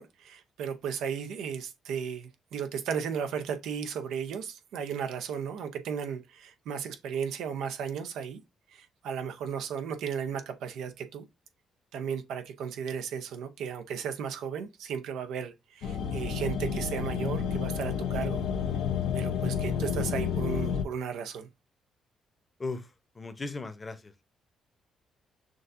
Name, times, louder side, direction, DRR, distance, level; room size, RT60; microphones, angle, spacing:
voice 1, 0.0-8.4 8.7-11.2 11.9-18.4 19.1-21.5, right 7 dB, 80° right, 0.7 m, -35 dB
sound 1, 15.8-20.8, left 7 dB, 85° left, 0.6 m, -30 dB
voice 2, 22.6-24.2, left 3 dB, 25° left, 0.8 m, -38 dB
6.2 x 2.6 x 2.5 m
cardioid pair, 90°, 0 cm